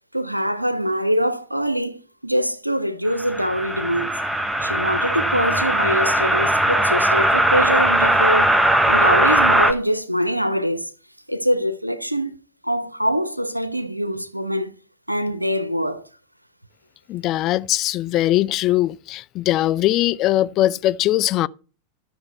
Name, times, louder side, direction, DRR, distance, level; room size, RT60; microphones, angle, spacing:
voice 1, 0.1-4.1 4.6-8.6 8.9-10.9 11.3-12.4 12.6-14.7 15.1-16.0, equal, 90° right, 0.9 m, -23 dB
sound 1, 3.1-9.7, right 1 dB, 5° right, 1.0 m, -19 dB
voice 2, 17.1-21.5, left 14 dB, 35° left, 0.4 m, -20 dB
12.5 x 6.7 x 4.5 m
figure-of-eight pair, 90°, 0 cm